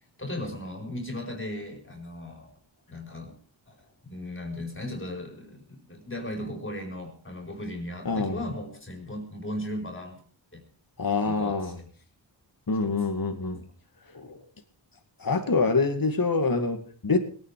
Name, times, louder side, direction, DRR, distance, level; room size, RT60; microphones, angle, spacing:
voice 1, 0.2-2.5 2.9-3.4 3.7-10.2 10.5-10.6 11.2-11.7 12.8-13.0, left 1 dB, 25° left, 2 dB, 4.6 m, -37 dB
voice 2, 8.1-8.4 11.0-11.8 12.7-13.6 14.1-14.4 15.2-17.2, left 4 dB, 45° left, 6 dB, 2.3 m, -26 dB
21.5 x 9.4 x 4.9 m, 0.43 s
wide cardioid pair, 70°, 47 cm